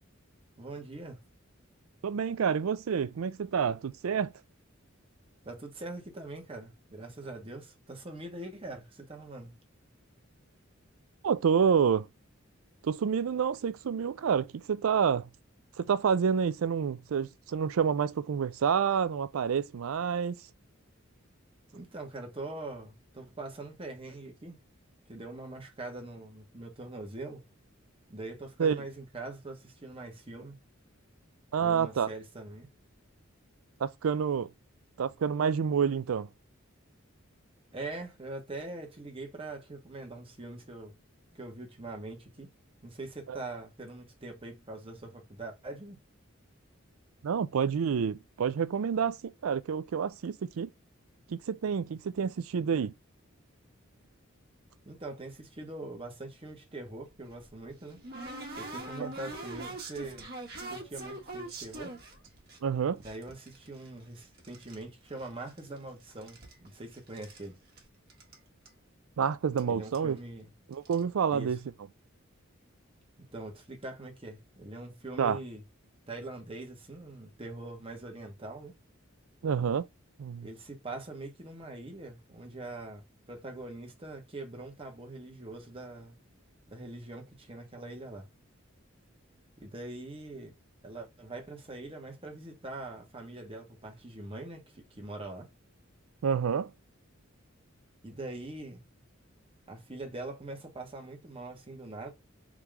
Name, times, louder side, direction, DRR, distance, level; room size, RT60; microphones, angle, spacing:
voice 1, 0.6-1.2 5.4-9.5 21.7-24.6 25.1-27.4 28.1-30.6 31.6-32.7 37.7-40.9 41.3-42.5 42.8-46.0 54.8-58.0 58.6-60.3 60.7-61.9 63.0-67.6 69.7-70.5 71.3-71.6 73.3-75.6 76.1-78.7 80.4-86.2 86.7-88.3 89.6-90.5 90.8-95.5 98.0-98.8 99.7-102.1, right 2 dB, 25° right, 1.3 m, -43 dB
voice 2, 2.0-4.3 11.2-12.1 12.8-15.3 15.8-20.4 28.6-28.8 31.5-32.1 33.8-34.5 35.0-36.3 43.3-43.4 47.2-50.7 51.3-52.9 59.0-59.1 62.6-63.0 69.2-70.2 70.7-71.6 75.2-75.4 79.4-79.9 80.2-80.5 96.2-96.7, right 7 dB, 90° right, 0.4 m, -28 dB
sound 1, 57.1-62.6 63.0-64.8 65.1-65.8 66.1-67.5 67.8-67.9 68.1-68.4 68.7-68.8 69.6-69.7 69.9-70.2 70.7-71.0, right 2 dB, 50° right, 1.5 m, -43 dB
3.7 x 3.0 x 3.2 m
head